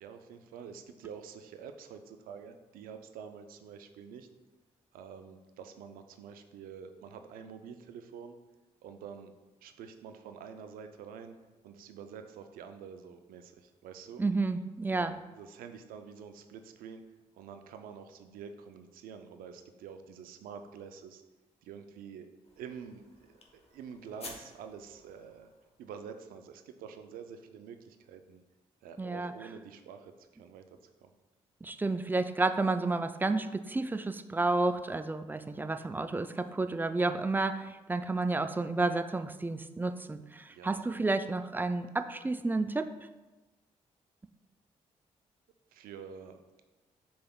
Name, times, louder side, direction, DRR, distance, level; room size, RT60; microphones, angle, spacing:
voice 1, 0.0-4.3 4.9-8.4 8.8-9.3 9.6-11.4 11.6-14.2 14.9-17.0 17.4-21.2 21.6-22.3 22.6-25.5 25.8-28.4 28.8-31.1 40.5-40.8 45.7-46.4, right 7 dB, 85° right, 8 dB, 0.4 m, -47 dB
voice 2, 14.2-15.1 29.0-29.3 31.6-42.9, right 3 dB, 15° right, 10 dB, 0.3 m, -31 dB
sound 1, 22.4-26.0, left 3 dB, 45° left, 1.0 m, -52 dB
6.9 x 3.4 x 2.3 m, 1.2 s
supercardioid pair, 50°, 15 cm